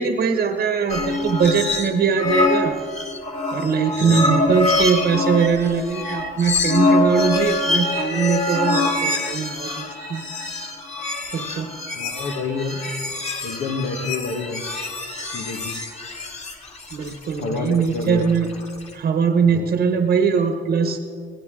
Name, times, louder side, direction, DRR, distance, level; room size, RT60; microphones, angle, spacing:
voice 1, 0.0-2.8 3.5-10.2 11.3-11.7 16.9-18.5 18.9-21.0, right 6 dB, 55° right, 6 dB, 1.1 m, -21 dB
sound 1, 0.9-1.9 2.2-18.9, left 2 dB, 35° left, 2.4 m, -24 dB
voice 2, 11.9-12.8 13.4-14.7 15.3-15.8 17.4-18.4 19.4-19.8, left 4 dB, 80° left, 5 dB, 1.5 m, -29 dB
21.0 x 16.5 x 3.8 m, 2.2 s
cardioid pair, 90°, 20 cm